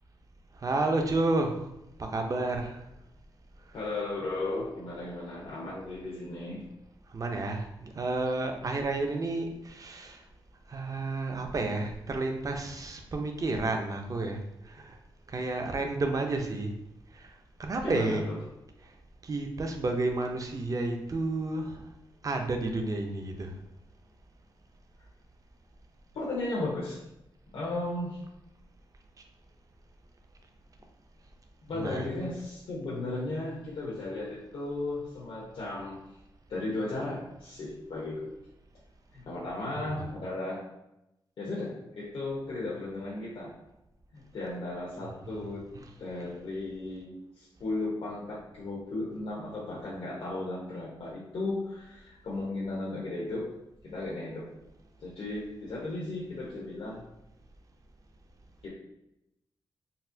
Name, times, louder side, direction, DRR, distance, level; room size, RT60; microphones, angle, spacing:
voice 1, 0.5-1.7 2.0-2.9 3.7-4.0 7.1-10.2 10.7-15.0 15.3-16.7 17.1-18.2 18.8-18.9 19.2-21.9 22.2-23.6 31.7-32.1 39.7-40.1 45.7-45.9, right 2 dB, 40° right, 4 dB, 0.5 m, -31 dB
voice 2, 3.7-6.7 17.8-18.4 26.1-27.0 27.5-28.2 31.6-36.1 36.5-38.3 39.1-40.7 41.4-43.5 44.1-45.6 46.0-53.5 53.8-54.5 55.0-57.0 58.6-58.7, left 2 dB, 80° left, -7 dB, 0.9 m, -35 dB
4.0 x 2.1 x 2.6 m, 0.87 s
cardioid pair, 75°, 9 cm